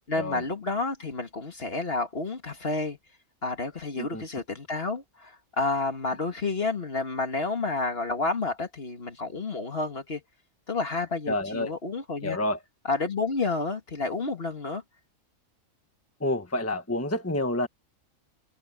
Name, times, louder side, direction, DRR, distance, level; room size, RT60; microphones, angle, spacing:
voice 1, 0.1-3.0 3.4-10.2 10.7-12.4 12.8-14.8, left 3 dB, 45° left, 2.2 m, -30 dB
voice 2, 11.3-11.7 12.2-12.6 16.2-17.7, left 1 dB, 10° left, 1.4 m, -28 dB
omnidirectional pair, 1.4 m